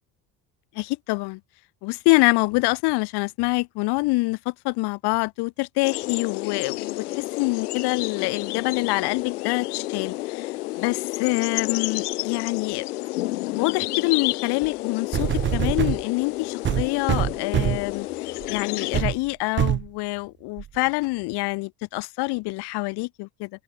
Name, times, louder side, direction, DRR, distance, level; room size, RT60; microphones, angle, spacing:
voice 1, 0.7-1.4 1.8-12.8 13.5-23.5, left 24 dB, 60° left, 0.7 m, -26 dB
sound 1, 5.8-19.0, left 19 dB, 90° left, 2.3 m, -30 dB
sound 2, 14.6-14.7 15.1-16.0 16.6-17.9 18.4-18.6 18.9-19.2 19.6-19.9 20.6-20.7, right 11 dB, 30° right, 0.4 m, -24 dB
open air
supercardioid pair, 85°, 44 cm